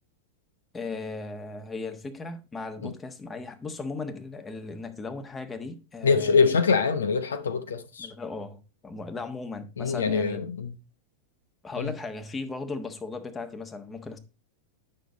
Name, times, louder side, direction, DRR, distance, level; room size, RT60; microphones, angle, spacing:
voice 1, 0.7-6.5 8.0-10.5 11.6-14.2, left 3 dB, 15° left, 1.3 m, -37 dB
voice 2, 6.0-8.1 9.8-10.7 11.8-11.9, left 5 dB, 65° left, 0.9 m, -24 dB
9.2 x 6.3 x 4.0 m
figure-of-eight pair, 90°, 0 cm